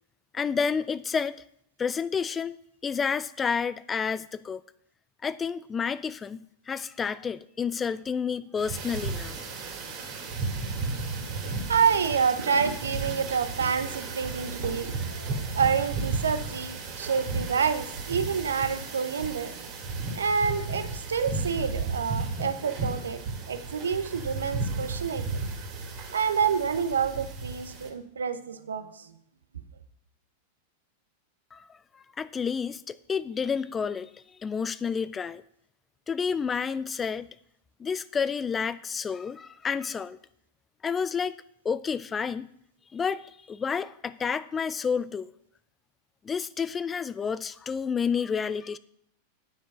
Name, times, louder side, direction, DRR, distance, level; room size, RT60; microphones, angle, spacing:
voice 1, 0.3-1.4 1.8-2.6 2.8-4.6 5.2-6.4 6.7-9.4 31.5-31.6 31.9-34.1 34.4-35.4 36.1-37.3 37.8-40.2 40.8-41.3 41.6-42.5 42.9-45.3 46.2-48.8, left 6 dB, 20° left, 16 dB, 0.3 m, -30 dB
sound 1, 8.6-27.9, right 3 dB, 40° right, 2.3 m, -34 dB
voice 2, 11.7-19.6 20.1-23.2 23.5-25.3 26.1-29.1, right 6 dB, 70° right, 11 dB, 0.8 m, -28 dB
9.7 x 6.1 x 5.4 m, 0.70 s
figure-of-eight pair, 90°, 0 cm